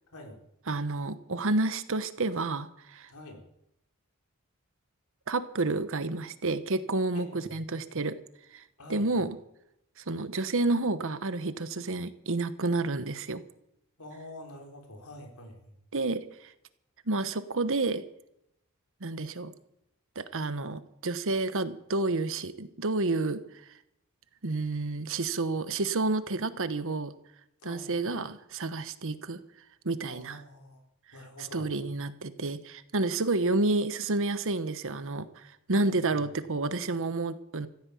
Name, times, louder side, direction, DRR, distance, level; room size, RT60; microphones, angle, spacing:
voice 1, 0.1-0.4 3.1-3.4 7.1-7.5 8.8-9.2 14.0-15.8 27.6-28.2 30.1-30.8 31.1-31.7 35.8-36.3, left 1 dB, 80° left, 2 dB, 4.3 m, -47 dB
voice 2, 0.7-3.1 5.3-8.2 8.5-8.6 8.9-9.4 10.0-13.4 15.9-16.5 17.1-18.0 19.0-19.5 20.1-23.4 24.4-27.1 27.6-29.4 29.8-30.4 31.4-35.4 35.7-37.7, right 2 dB, 60° right, 12 dB, 1.1 m, -30 dB
15.5 x 9.6 x 8.5 m, 0.80 s
head